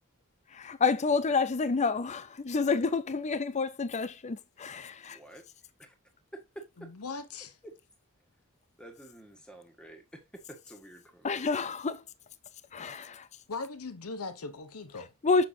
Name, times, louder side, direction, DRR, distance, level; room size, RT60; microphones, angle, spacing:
voice 1, 0.5-5.2 11.2-12.0 12.7-13.3 15.2-15.5, left 4 dB, 30° left, 0.5 m, -29 dB
voice 2, 5.1-5.4 5.8-5.9 6.3-6.9 7.6-7.8 8.8-11.5, right 1 dB, 5° left, 1.6 m, -49 dB
voice 3, 6.8-7.5 13.5-15.1, left 3 dB, 85° left, 1.0 m, -39 dB
6.9 x 6.0 x 2.7 m
head